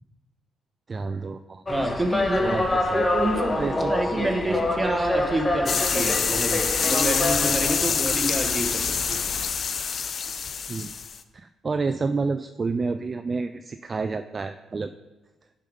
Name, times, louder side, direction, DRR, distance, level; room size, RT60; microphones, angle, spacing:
voice 1, 0.9-1.6 2.4-3.1 3.5-4.6 7.9-8.0 10.7-10.9 11.3-14.9, right 4 dB, 35° right, 10 dB, 0.3 m, -30 dB
sound 1, 1.7-9.5, left 2 dB, 20° left, 1.1 m, -27 dB
voice 2, 1.7-2.7 2.9-9.2, right 1 dB, 15° right, 5 dB, 1.2 m, -28 dB
sound 2, 5.7-11.2, left 6 dB, 50° left, 0.6 m, -26 dB
9.2 x 5.0 x 5.3 m, 1.2 s
cardioid pair, 90°, 0 cm